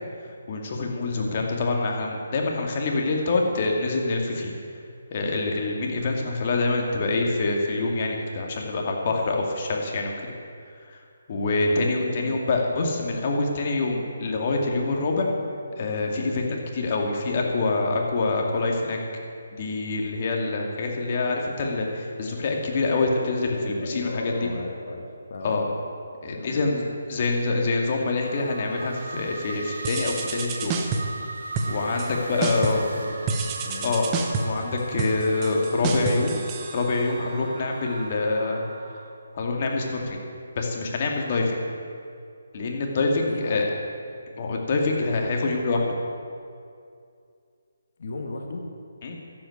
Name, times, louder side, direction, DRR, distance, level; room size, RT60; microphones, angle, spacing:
voice 1, 0.2-4.5 5.1-10.3 10.9-11.0 11.3-15.3 15.8-19.0 19.5-24.5 25.4-25.6 26.2-26.8 27.1-30.8 31.7-32.8 33.8-34.1 34.4-36.4 36.7-38.6 39.3-40.2 40.6-41.6 42.5-43.6 44.4-45.8 49.0-49.2, left 3 dB, 40° left, 1 dB, 2.3 m, -25 dB
voice 2, 23.5-25.8 26.3-26.7 32.5-33.9 43.2-43.7 48.0-48.7, left 2 dB, 55° left, 2 dB, 1.7 m, -36 dB
sound 1, 28.2-39.0, right 2 dB, 60° right, 3.2 m, -39 dB
sound 2, 29.8-31.2 31.5-32.1 32.4-32.9 33.3-37.3, right 4 dB, 20° right, 1.0 m, -29 dB
12.0 x 8.8 x 9.5 m, 2.4 s
hypercardioid pair, 160°, 0 cm